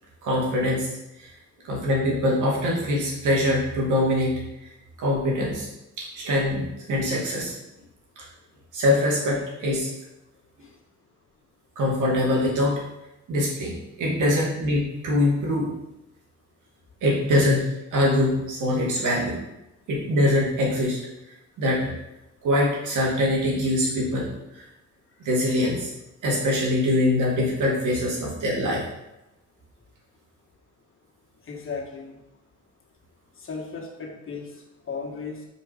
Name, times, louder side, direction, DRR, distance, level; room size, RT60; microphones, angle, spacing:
voice 1, 0.2-0.9 1.2-1.3 1.6-4.7 5.0-5.7 6.0-6.6 6.9-7.5 8.2-8.3 8.7-9.9 11.8-12.7 13.3-15.7 17.0-19.4 19.9-21.0 21.6-21.9 22.4-24.7 25.2-25.9 26.2-28.8, left 1 dB, 80° right, -3 dB, 2.4 m, -23 dB
voice 2, 31.4-32.2 33.4-35.5, left 5 dB, 45° left, 0 dB, 1.6 m, -36 dB
5.4 x 4.7 x 5.1 m, 0.94 s
cardioid pair, 90°, 30 cm